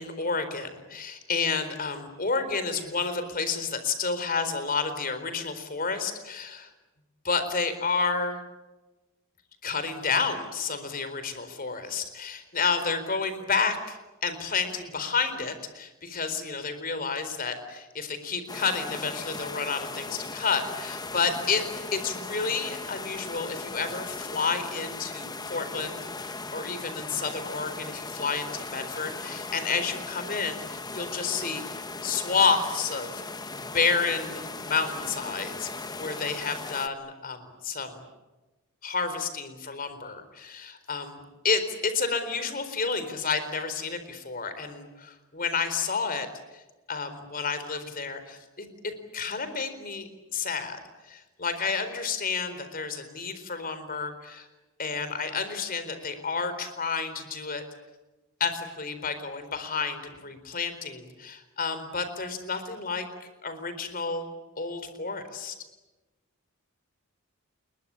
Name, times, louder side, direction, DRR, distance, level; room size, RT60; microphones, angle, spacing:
voice 1, 0.0-6.7 7.2-8.4 9.6-21.6 21.9-31.6 32.0-33.2 33.5-35.7 36.0-38.0 38.8-41.2 41.4-46.3 46.9-50.8 51.1-54.5 54.8-57.6 58.4-64.3 64.6-65.5, left 5 dB, 40° left, 10 dB, 4.2 m, -30 dB
sound 1, 18.5-36.9, left 3 dB, 20° left, 1.3 m, -38 dB
29.0 x 22.5 x 8.5 m, 1.1 s
head